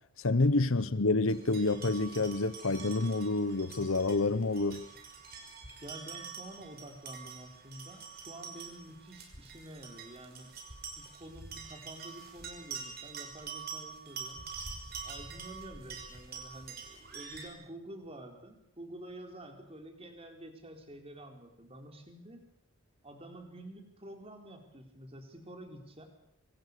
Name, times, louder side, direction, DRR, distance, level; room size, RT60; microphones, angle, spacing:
voice 1, 0.2-4.8, left 3 dB, 70° left, 1.0 m, -28 dB
sound 1, 1.3-17.5, right 5 dB, 45° right, 5.7 m, -46 dB
voice 2, 5.8-10.5 11.0-14.5 15.0-22.4 23.0-26.1, right 1 dB, 25° right, 4.3 m, -49 dB
26.5 x 25.0 x 6.8 m
head